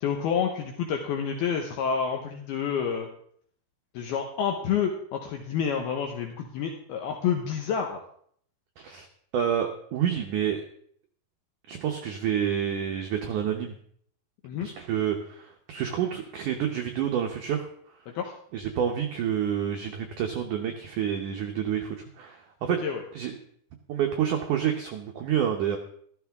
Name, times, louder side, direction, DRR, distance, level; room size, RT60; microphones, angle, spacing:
voice 1, 0.0-3.1 3.9-8.0 14.4-14.7 18.1-18.3 22.8-23.0, left 7 dB, 70° left, 2 dB, 2.7 m, -29 dB
voice 2, 8.8-9.1 9.3-10.6 11.7-13.8 14.6-17.7 18.5-22.8 23.2-23.3 23.9-25.8, right 9 dB, 85° right, 3 dB, 1.8 m, -28 dB
14.0 x 13.5 x 3.6 m, 0.64 s
omnidirectional pair, 5.0 m